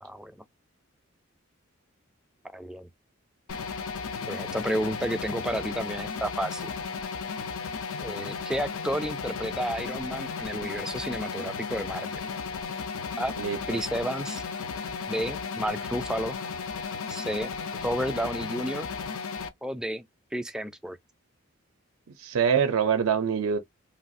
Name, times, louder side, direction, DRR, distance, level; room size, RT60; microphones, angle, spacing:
voice 1, 0.0-0.4 2.4-2.9 4.3-6.7 8.0-12.2 13.2-13.3 13.7-14.4 15.1-16.4 17.1-18.9 19.6-20.0 20.3-21.0, equal, 5° right, 0.3 m, -31 dB
sound 1, 3.5-19.5, left 5 dB, 80° left, 0.5 m, -35 dB
voice 2, 13.4-13.8 22.2-23.6, right 7 dB, 75° right, 0.4 m, -25 dB
3.3 x 2.4 x 2.5 m
head